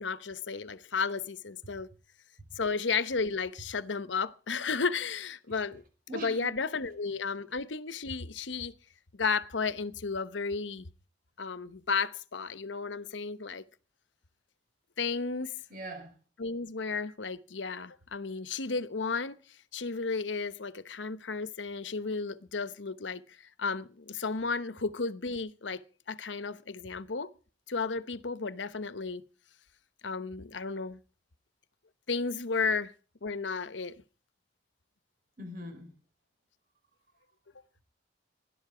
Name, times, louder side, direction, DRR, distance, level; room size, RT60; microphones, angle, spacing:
voice 1, 0.0-1.9 2.6-5.8 6.2-8.7 9.1-10.9 11.4-13.6 15.0-15.5 16.4-19.4 19.7-23.2 23.6-25.8 26.1-27.3 27.7-29.2 30.0-31.0 32.1-32.9 33.2-33.9, left 4 dB, 85° left, 1.0 m, -33 dB
voice 2, 6.1-6.5 15.7-16.1 35.4-35.9, right 1 dB, 50° right, 5.0 m, -41 dB
20.0 x 12.0 x 5.0 m
head